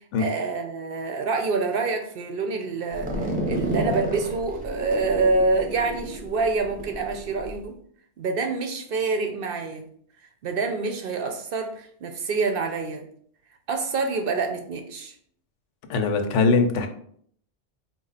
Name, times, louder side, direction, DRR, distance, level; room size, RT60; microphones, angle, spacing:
voice 1, 0.2-7.8 8.2-9.9 10.4-13.0 13.7-15.1, right 3 dB, 60° right, 5 dB, 0.7 m, -26 dB
sound 1, 2.9-7.6, equal, 10° right, 0.7 m, -30 dB
voice 2, 15.9-16.9, left 4 dB, 85° left, 6 dB, 1.0 m, -21 dB
4.3 x 2.4 x 3.9 m, 0.62 s
omnidirectional pair, 1.2 m